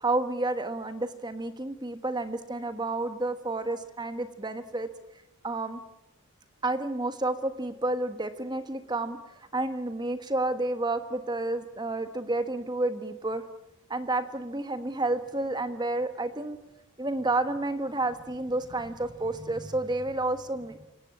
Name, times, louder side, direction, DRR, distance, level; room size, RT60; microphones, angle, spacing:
voice 1, 0.0-4.9 5.4-5.8 6.6-9.2 9.5-13.5 13.9-16.6 17.0-20.8, right 2 dB, 20° right, 10 dB, 1.3 m, -30 dB
28.5 x 18.0 x 8.7 m, 0.89 s
head